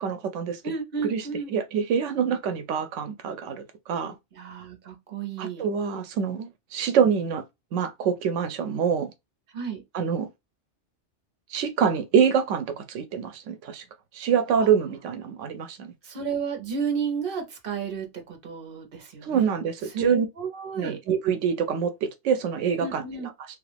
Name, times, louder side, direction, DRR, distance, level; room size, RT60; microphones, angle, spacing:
voice 1, 0.0-0.6 1.0-4.2 5.4-7.4 7.7-9.1 9.9-10.3 11.5-13.8 14.1-15.9 19.2-20.3 20.8-23.3, right 7 dB, 85° right, 0.9 m, -26 dB
voice 2, 0.6-1.5 4.4-5.7 9.5-9.8 14.6-14.7 16.0-19.5 19.9-21.0 22.8-23.3, right 6 dB, 50° right, 1.1 m, -32 dB
3.0 x 2.4 x 3.3 m
omnidirectional pair, 1.2 m